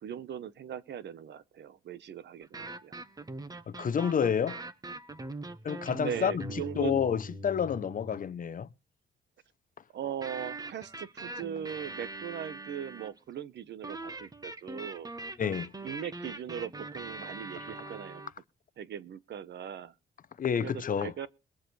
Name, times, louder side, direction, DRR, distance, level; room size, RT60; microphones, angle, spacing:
voice 1, 0.0-2.9 6.0-7.1 9.9-15.1 15.8-18.2 18.8-19.9 20.6-21.3, right 9 dB, 60° right, 1.1 m, -39 dB
sound 1, 2.4-8.3 10.2-13.2 13.8-18.3, right 2 dB, 20° right, 1.2 m, -42 dB
voice 2, 3.7-4.6 5.6-6.4 6.8-8.7 15.4-15.7 20.4-21.1, left 7 dB, 45° left, 0.8 m, -29 dB
22.5 x 7.5 x 3.3 m
cardioid pair, 90°, 20 cm